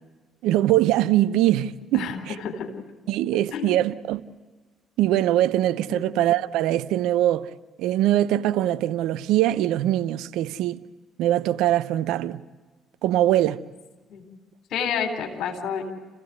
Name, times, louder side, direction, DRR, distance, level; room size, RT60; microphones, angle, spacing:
voice 1, 0.4-2.3 3.1-4.2 5.0-7.5 7.8-10.8 11.2-12.4 13.0-13.6, right 13 dB, 70° right, 0.7 m, -22 dB
voice 2, 1.9-2.8 3.5-3.7 5.9-6.1 14.1-14.2 14.7-15.8, left 7 dB, 65° left, 3.8 m, -29 dB
29.0 x 16.0 x 7.9 m
hypercardioid pair, 50°, 0 cm